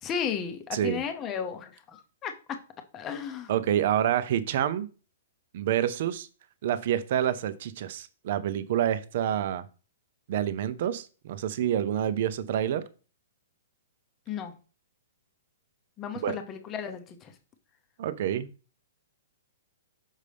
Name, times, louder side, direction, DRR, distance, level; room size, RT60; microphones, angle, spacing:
voice 1, 0.0-2.6 2.9-3.5 14.3-14.5 16.0-17.3, left 7 dB, 20° left, 0.7 m, -34 dB
voice 2, 0.7-1.0 3.5-4.9 5.5-6.3 6.6-9.6 10.3-12.8 16.2-16.4 18.0-18.5, right 10 dB, 50° right, 0.6 m, -27 dB
6.3 x 5.4 x 3.4 m
hypercardioid pair, 160°, 0 cm